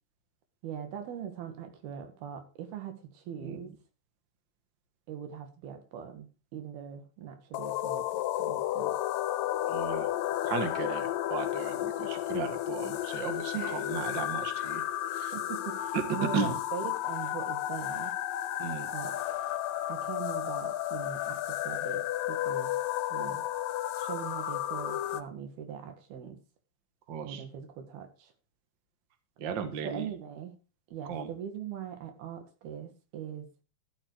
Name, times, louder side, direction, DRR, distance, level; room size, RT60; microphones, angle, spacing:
voice 1, 0.6-3.7 5.1-9.0 13.5-14.0 15.3-18.2 18.9-19.4 19.9-22.8 23.1-23.5 24.0-26.4 27.2-28.3 29.8-30.6 30.9-33.5, right 8 dB, 85° right, 7 dB, 3.7 m, -41 dB
sound 1, 7.5-25.2, left 13 dB, 75° left, 2.2 m, -33 dB
voice 2, 9.7-10.1 10.4-14.8 15.2-15.3 16.3-16.5 18.6-18.9 27.1-27.4 29.4-30.1 31.1-31.3, right 6 dB, 45° right, 7 dB, 1.5 m, -35 dB
13.0 x 8.0 x 4.7 m, 0.32 s
omnidirectional pair, 4.3 m